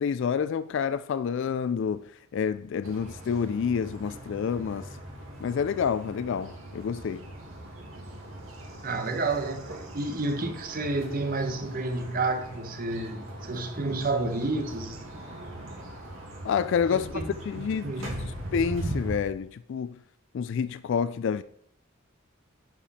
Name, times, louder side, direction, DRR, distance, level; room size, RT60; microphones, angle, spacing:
voice 1, 0.0-4.9 5.4-7.2 16.4-18.1 18.5-20.0 20.3-21.4, left 6 dB, 60° left, 0.3 m, -28 dB
sound 1, 2.8-19.2, right 1 dB, 75° right, 2.0 m, -40 dB
voice 2, 8.8-15.1 16.9-18.4, right 2 dB, 45° right, 1.1 m, -30 dB
10.5 x 5.0 x 4.2 m
head